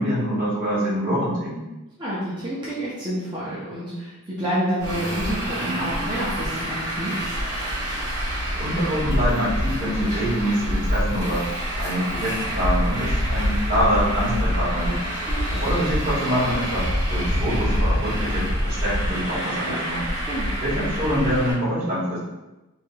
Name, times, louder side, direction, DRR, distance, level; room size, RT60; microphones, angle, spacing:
voice 1, 0.0-1.7 8.5-11.5 11.8-15.0 15.5-20.1 20.6-22.2, equal, 40° right, -10 dB, 1.4 m, -25 dB
voice 2, 2.0-7.2 15.3-15.6 20.1-20.5, right 1 dB, 20° right, -9 dB, 0.5 m, -29 dB
Traffic noise roadway noise, 4.8-21.5, equal, 65° right, 1.5 m, -26 dB
3.1 x 2.9 x 2.2 m, 1.0 s
head